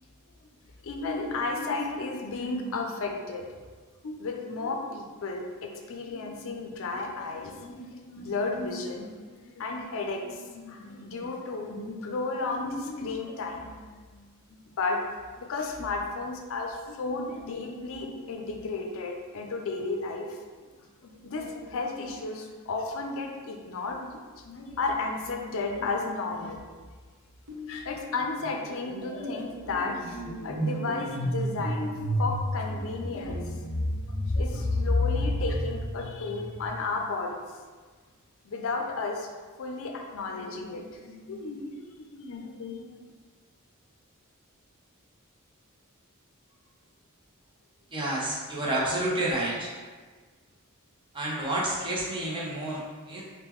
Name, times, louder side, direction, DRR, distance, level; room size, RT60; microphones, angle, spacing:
voice 1, 0.8-3.5 4.0-15.0 15.4-20.4 21.0-26.6 27.7-37.4 38.4-39.3 39.6-41.8 42.1-43.0, left 3 dB, 65° left, 2 dB, 0.4 m, -33 dB
sound 1, 27.5-27.8 28.1-36.8, left 1 dB, 90° right, 1.0 m, -31 dB
voice 2, 47.9-49.7 51.1-53.2, right 1 dB, 20° right, -5 dB, 0.6 m, -29 dB
3.7 x 2.1 x 3.0 m, 1.5 s
head